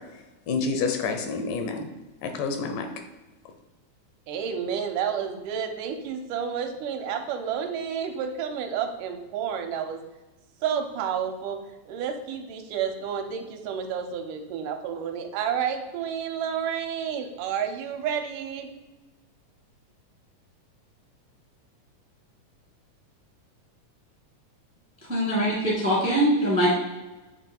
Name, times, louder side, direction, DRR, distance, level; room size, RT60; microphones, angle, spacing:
voice 1, 0.5-1.9 2.2-2.9, left 4 dB, 85° left, 6 dB, 2.4 m, -28 dB
voice 2, 4.3-10.0 10.6-11.6 11.9-18.7, right 7 dB, 80° right, 5 dB, 2.1 m, -30 dB
voice 3, 25.1-26.7, equal, 15° right, -4 dB, 0.4 m, -22 dB
8.2 x 3.1 x 4.4 m, 1.1 s
omnidirectional pair, 3.7 m